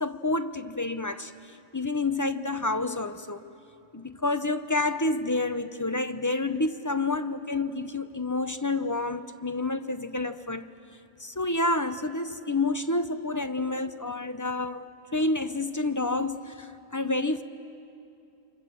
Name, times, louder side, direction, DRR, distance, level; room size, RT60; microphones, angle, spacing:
voice 1, 0.0-3.5 3.9-10.7 11.2-17.4, left 2 dB, 20° left, 0.5 m, -29 dB
29.5 x 25.0 x 7.6 m
omnidirectional pair, 1.3 m